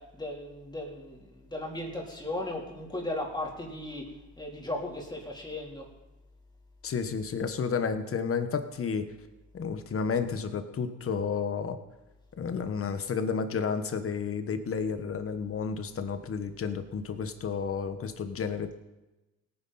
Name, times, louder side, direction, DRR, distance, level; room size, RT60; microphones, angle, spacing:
voice 1, 0.1-4.1 4.4-5.9, left 1 dB, 15° left, -2 dB, 3.7 m, -36 dB
voice 2, 6.8-9.1 9.5-11.8 12.4-18.7, left 6 dB, 45° left, 9 dB, 1.3 m, -31 dB
18.0 x 9.9 x 4.3 m, 1.0 s
cardioid pair, 95°, 30 cm